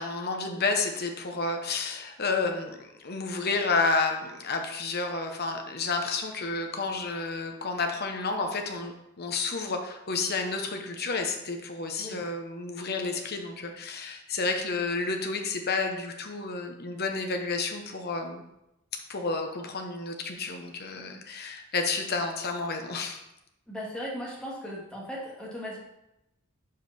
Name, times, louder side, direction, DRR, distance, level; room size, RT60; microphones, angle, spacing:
voice 1, 0.0-18.4 19.1-23.2, left 3 dB, 45° left, 4 dB, 0.9 m, -30 dB
voice 2, 23.7-25.8, equal, 5° left, -6 dB, 1.9 m, -37 dB
5.3 x 4.7 x 6.0 m, 0.87 s
head